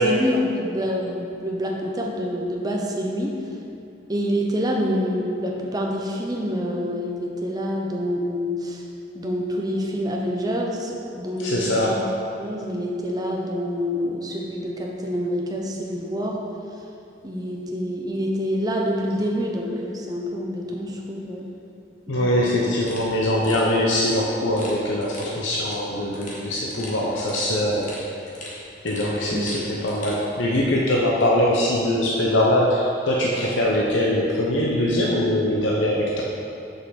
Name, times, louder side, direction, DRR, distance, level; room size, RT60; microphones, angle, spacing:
voice 1, 0.0-3.4 4.1-8.8 9.1-12.0 12.4-16.4 17.2-21.4 22.1-22.6 29.3-29.5, equal, 20° right, -1 dB, 0.9 m, -27 dB
voice 2, 11.4-12.1 22.1-28.0 28.8-36.2, left 1 dB, 90° left, -3 dB, 0.9 m, -22 dB
sound 1, 22.8-30.2, left 1 dB, 40° left, 1.6 m, -41 dB
6.6 x 5.6 x 6.3 m, 2.6 s
head